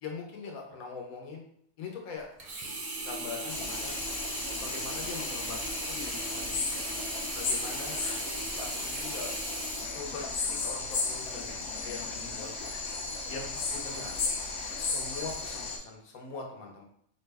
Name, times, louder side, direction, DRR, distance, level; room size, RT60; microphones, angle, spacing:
voice 1, 0.0-1.4 1.8-2.3 3.0-4.0 4.6-6.7 7.3-8.0 8.6-9.4 9.9-10.3 10.6-12.5 13.2-14.2 14.8-16.8, left 4 dB, 80° left, 1 dB, 1.2 m, -42 dB
Sink (filling or washing), 2.4-10.6 11.2-11.3, right 2 dB, 55° right, 0.4 m, -38 dB
sound 1, 3.5-15.8, left 4 dB, 60° left, 0.7 m, -35 dB
4.7 x 2.1 x 3.3 m, 0.67 s
omnidirectional pair, 1.5 m